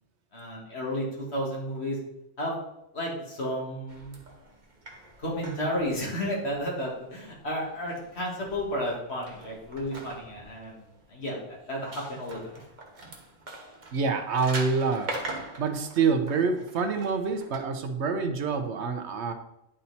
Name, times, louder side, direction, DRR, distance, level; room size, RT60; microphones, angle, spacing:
voice 1, 0.3-2.0 2.4-2.6 2.9-4.1 5.2-10.8 11.1-12.6 13.0-13.1, equal, 60° left, -3 dB, 2.4 m, -32 dB
sound 1, 3.9-17.6, right 2 dB, 40° right, 1.2 m, -43 dB
voice 2, 13.9-15.1 15.6-19.3, right 5 dB, 70° right, 7 dB, 1.0 m, -26 dB
9.9 x 4.3 x 4.1 m, 0.84 s
omnidirectional pair, 1.2 m